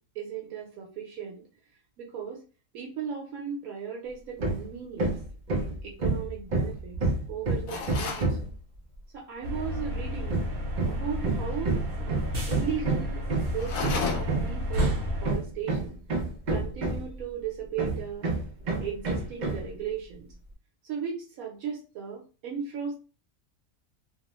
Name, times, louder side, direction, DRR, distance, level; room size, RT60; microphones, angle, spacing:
voice 1, 0.1-1.4 2.0-2.4 2.7-5.1 5.5-8.5 9.1-10.4 10.8-16.0 16.5-18.3 18.8-20.3 20.8-23.0, right 7 dB, 75° right, -2 dB, 1.1 m, -37 dB
Hammer, 4.4-4.7 5.0-8.6 10.3-17.2 17.8-19.7, right 3 dB, 90° right, 0.4 m, -29 dB
sound 1, 7.7-8.3 13.6-14.5, left 5 dB, 70° left, 1.0 m, -32 dB
sound 2, 9.4-15.3, left 1 dB, 50° right, 0.8 m, -32 dB
2.9 x 2.0 x 2.9 m, 0.35 s
omnidirectional pair, 1.6 m